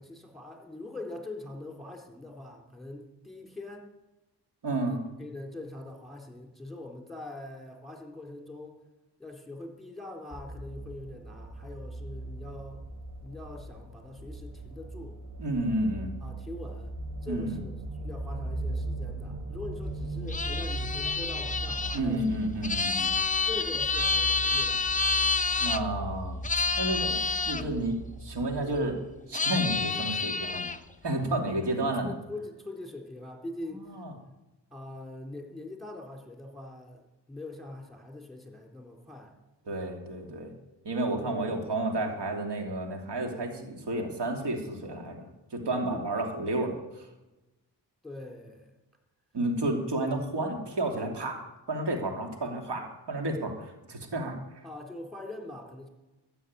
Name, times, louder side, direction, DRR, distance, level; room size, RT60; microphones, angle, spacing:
voice 1, 0.0-3.9 4.8-8.8 9.2-12.8 13.2-15.2 16.2-17.0 17.2-22.4 23.4-24.9 29.3-29.4 31.5-34.0 34.7-39.4 41.2-41.6 45.9-46.0 48.0-48.7 54.6-55.9, left 2 dB, ahead, 1 dB, 4.0 m, -43 dB
voice 2, 4.6-5.0 15.4-16.1 17.3-17.6 21.9-23.1 25.6-27.2 27.4-29.0 29.3-30.7 31.0-32.1 33.7-34.1 39.7-40.5 40.8-47.1 49.3-51.4 51.7-54.6, right 1 dB, 70° right, 3 dB, 2.9 m, -31 dB
sound 1, 10.3-28.9, right 2 dB, 35° right, 3.5 m, -39 dB
sound 2, 20.3-25.8 26.4-27.6 29.3-30.8, left 4 dB, 20° left, 0.7 m, -28 dB
12.5 x 7.0 x 9.6 m, 1.1 s
cardioid pair, 60°, 42 cm